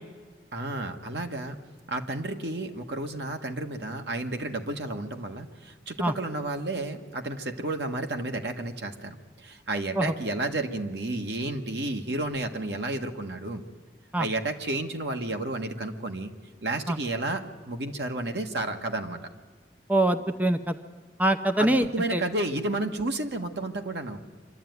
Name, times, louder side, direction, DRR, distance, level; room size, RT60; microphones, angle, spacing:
voice 1, 0.5-1.5 1.9-13.6 14.2-16.3 16.6-19.2 21.6-24.2, right 2 dB, 75° right, 5 dB, 1.6 m, -31 dB
voice 2, 19.9-20.8 21.2-21.8 22.1-22.2, right 1 dB, 10° right, 8 dB, 0.6 m, -23 dB
26.0 x 12.0 x 9.5 m, 1.5 s
head